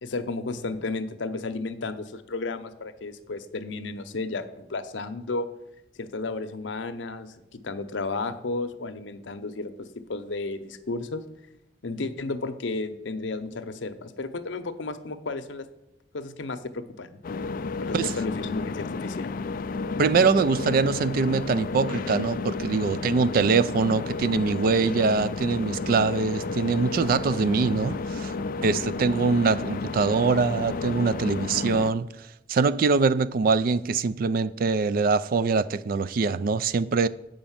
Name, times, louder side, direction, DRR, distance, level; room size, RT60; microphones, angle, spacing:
voice 1, 0.0-5.5 6.0-11.2 11.8-15.6 16.1-17.2 17.8-19.3, left 3 dB, 80° left, 0.7 m, -33 dB
sound 1, 17.2-31.9, left 4 dB, 45° left, 0.3 m, -32 dB
voice 2, 20.0-28.3 28.6-37.1, right 4 dB, 50° right, 0.3 m, -23 dB
Thunder, 25.6-31.3, equal, 15° right, 1.0 m, -47 dB
7.9 x 5.1 x 7.2 m
head